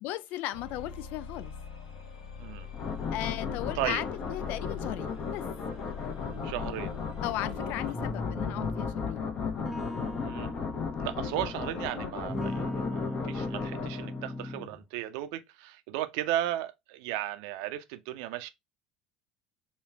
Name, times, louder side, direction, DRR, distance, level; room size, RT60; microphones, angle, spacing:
voice 1, 0.0-1.5 3.1-4.0 4.3-5.5 7.2-9.3, left 15 dB, 55° left, 0.4 m, -36 dB
sound 1, 0.5-8.0, left 6 dB, 75° left, 1.1 m, -42 dB
sound 2, 2.7-14.4, left 6 dB, 40° left, 0.9 m, -35 dB
voice 2, 6.4-6.9 10.2-10.5 11.0-18.5, right 13 dB, 65° right, 0.6 m, -35 dB
sound 3, 7.9-9.0 9.6-11.9 12.3-14.9, left 1 dB, ahead, 0.7 m, -37 dB
5.1 x 2.4 x 3.3 m
figure-of-eight pair, 65°, 3 cm